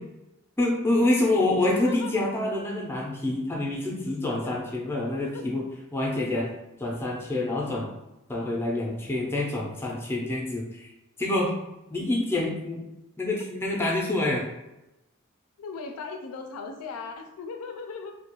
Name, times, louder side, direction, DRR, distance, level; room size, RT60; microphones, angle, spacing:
voice 1, 0.6-5.6 5.9-6.5 6.8-7.9 8.3-10.9 11.2-11.5 11.9-12.8 13.2-14.4, left 2 dB, 10° left, -2 dB, 0.4 m, -27 dB
voice 2, 1.7-2.1 4.4-4.5 5.3-5.4 15.6-18.2, left 4 dB, 85° left, 5 dB, 0.4 m, -37 dB
2.3 x 2.1 x 2.9 m, 0.96 s
head